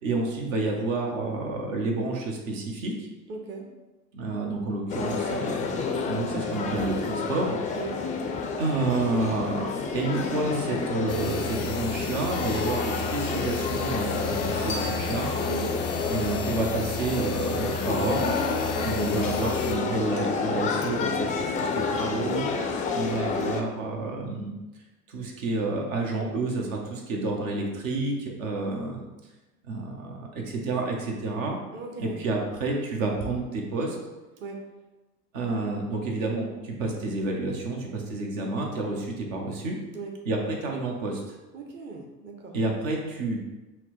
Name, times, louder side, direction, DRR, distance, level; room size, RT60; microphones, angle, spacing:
voice 1, 0.0-3.1 4.1-7.6 8.6-15.3 16.1-18.4 18.8-22.5 22.9-24.5 25.1-29.0 29.6-31.6 32.0-34.0 35.3-39.8 40.2-41.2 42.5-43.5, right 2 dB, 70° right, 0 dB, 0.9 m, -29 dB
voice 2, 3.3-3.7 7.8-8.0 15.5-15.7 18.7-19.0 31.7-32.2 34.4-34.6 39.9-40.1 41.5-42.5, right 4 dB, 25° right, 1 dB, 0.6 m, -38 dB
sound 1, 4.9-23.6, left 4 dB, 20° left, 0.3 m, -29 dB
sound 2, 11.1-19.8, left 3 dB, 80° left, 0.5 m, -34 dB
5.6 x 2.1 x 3.0 m, 1.1 s
hypercardioid pair, 75°, 42 cm